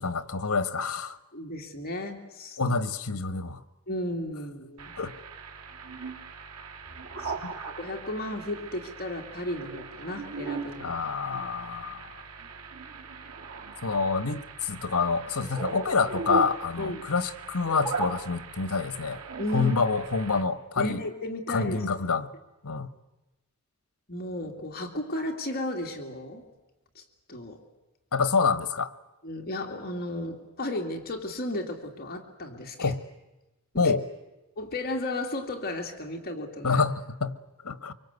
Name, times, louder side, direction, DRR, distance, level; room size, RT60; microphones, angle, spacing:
voice 1, 0.0-1.2 2.6-3.6 5.0-5.1 7.4-7.5 10.8-12.1 13.8-19.2 19.5-21.0 21.5-22.3 22.6-22.9 28.1-28.9 32.8-33.0 33.8-34.1 36.6-37.4 37.6-37.9, left 4 dB, 80° left, 13 dB, 1.3 m, -27 dB
voice 2, 1.3-2.6 3.9-4.9 5.9-6.0 7.2-11.0 16.8-17.1 19.4-19.7 20.8-22.0 24.1-26.4 27.0-27.1 27.3-27.6 29.2-32.9 33.7-33.9 34.6-36.8, left 1 dB, 45° left, 2 dB, 2.5 m, -34 dB
sound 1, 4.8-20.4, right 4 dB, 85° right, 2.6 m, -39 dB
25.0 x 24.0 x 8.2 m, 1.0 s
head